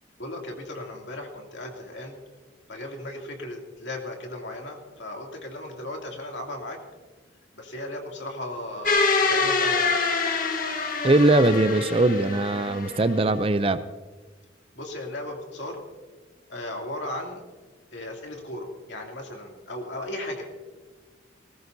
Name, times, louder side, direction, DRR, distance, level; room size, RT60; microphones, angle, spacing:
voice 1, 0.2-2.2 2.7-6.8 7.5-10.0 14.7-15.8 16.5-17.4 17.9-20.5, left 1 dB, 65° left, 1 dB, 2.7 m, -36 dB
sound 1, 8.9-13.3, left 4 dB, 45° left, 1.5 m, -25 dB
voice 2, 11.0-13.8, right 2 dB, 30° right, 12 dB, 0.5 m, -21 dB
19.5 x 19.0 x 2.7 m, 1.3 s
head